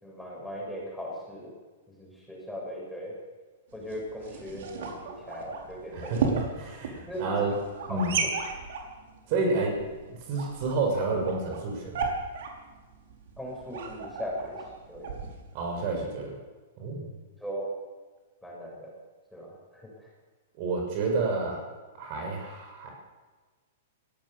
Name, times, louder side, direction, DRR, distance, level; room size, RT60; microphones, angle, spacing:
voice 1, 0.0-1.5 2.0-3.1 3.7-6.2 7.1-7.5 7.9-8.3 13.4-14.6 14.9-15.1 17.4-17.7 18.4-18.9 19.3-19.6, equal, ahead, -3 dB, 7.6 m, -38 dB
sound 1, 3.7-16.1, right 5 dB, 65° right, 5.6 m, -36 dB
voice 2, 5.9-7.6 7.9-8.2 9.3-12.1 15.5-16.4 16.8-17.0 20.6-21.6 22.0-22.9, right 3 dB, 40° right, 1 dB, 6.3 m, -30 dB
22.5 x 18.0 x 7.2 m, 1.3 s
hypercardioid pair, 155°, 0 cm